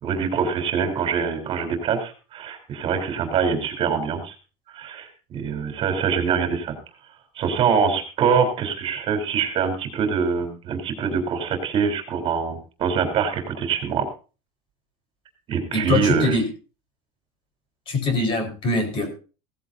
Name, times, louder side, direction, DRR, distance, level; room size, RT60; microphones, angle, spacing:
voice 1, 0.0-4.4 4.7-6.7 7.4-14.0 15.5-16.4, right 6 dB, 35° right, 5 dB, 3.7 m, -24 dB
voice 2, 15.7-16.5 17.9-19.1, left 2 dB, 35° left, 5 dB, 4.7 m, -23 dB
17.0 x 15.0 x 2.7 m, 0.34 s
cardioid pair, 160°, 14 cm